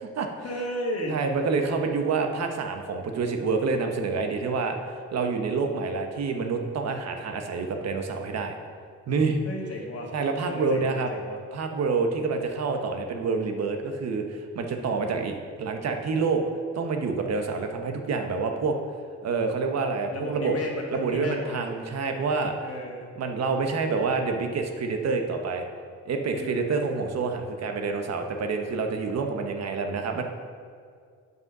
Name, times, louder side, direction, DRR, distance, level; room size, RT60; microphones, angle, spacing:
voice 1, 0.4-1.2 9.4-10.1 10.4-11.4 20.1-21.7 22.6-23.1 26.3-26.7, left 1 dB, 50° left, 0 dB, 1.8 m, -34 dB
voice 2, 1.1-8.5 9.1-9.4 10.1-11.1 11.5-16.4 16.7-18.7 19.2-20.5 20.9-22.5 23.2-25.6 26.1-30.2, right 4 dB, 60° right, 5 dB, 1.1 m, -27 dB
8.1 x 5.5 x 6.0 m, 2.1 s
cardioid pair, 90°, 30 cm